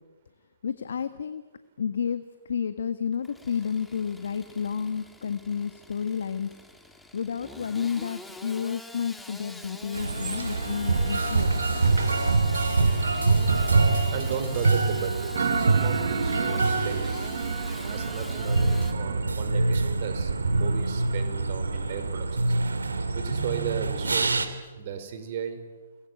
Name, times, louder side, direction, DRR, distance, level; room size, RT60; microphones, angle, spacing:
voice 1, 0.6-1.4 1.8-6.5 7.1-11.9, left 7 dB, 70° left, 11 dB, 1.6 m, -31 dB
Engine starting / Sawing, 3.1-18.9, left 1 dB, 5° left, 2.7 m, -45 dB
sound 1, 9.9-24.5, right 3 dB, 85° right, 3.0 m, -25 dB
voice 2, 14.1-17.2 17.8-22.6 23.1-24.5 24.7-25.6, right 7 dB, 45° right, 9 dB, 5.3 m, -35 dB
sound 2, 15.3-20.9, right 7 dB, 65° right, 1.6 m, -34 dB
30.0 x 21.0 x 9.4 m, 1.3 s
hypercardioid pair, 135°, 0 cm